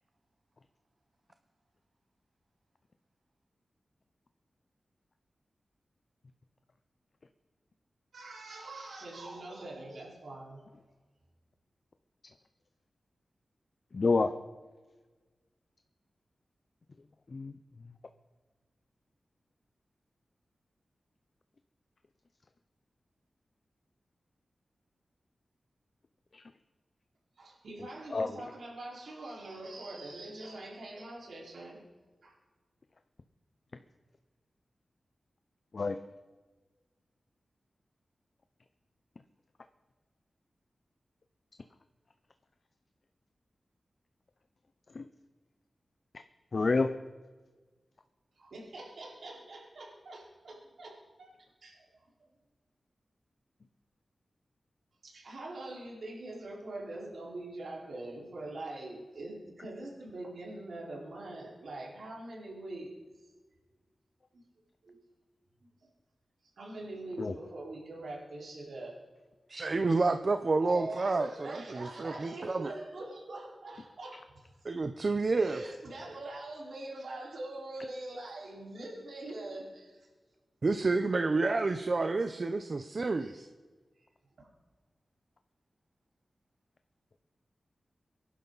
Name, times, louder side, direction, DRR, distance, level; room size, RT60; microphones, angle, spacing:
voice 1, 8.1-10.6 27.4-31.8 32.2-32.3 48.4-51.3 51.6-52.3 55.0-62.9 63.2-63.3 64.3-64.4 64.8-65.0 65.8-65.9 66.6-69.0 70.6-74.5 74.8-74.9 75.3-80.0 83.1-83.4 84.0-84.1 84.4-84.5, right 2 dB, 85° right, -4 dB, 4.5 m, -43 dB
voice 2, 13.9-14.3 17.3-17.6 26.3-26.4 28.1-28.3 35.7-36.0 44.9-45.1 46.5-46.9 67.2-67.3, left 3 dB, 50° left, 9 dB, 0.7 m, -28 dB
voice 3, 69.5-72.7 74.6-75.6 80.6-83.5, right 3 dB, 45° right, 8 dB, 0.7 m, -29 dB
23.5 x 11.5 x 4.0 m, 1.3 s
wide cardioid pair, 115°, 0 cm